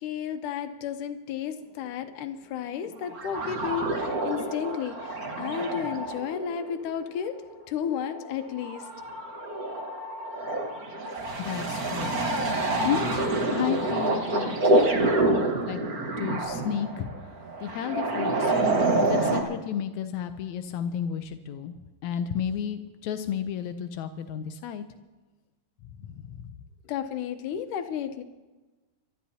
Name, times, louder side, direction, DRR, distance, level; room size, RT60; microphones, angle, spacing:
voice 1, 0.0-7.4 7.7-8.8 26.9-28.2, left 8 dB, 70° left, 8 dB, 2.2 m, -33 dB
sound 1, 3.0-19.4, right 2 dB, 70° right, 0.8 m, -27 dB
voice 2, 11.4-12.1 12.8-14.7 15.6-15.8 16.2-17.1 17.6-18.5 19.1-21.7 22.0-24.8 26.0-26.4, left 9 dB, 90° left, 8 dB, 1.6 m, -32 dB
29.0 x 13.0 x 2.8 m, 1.2 s
omnidirectional pair, 4.1 m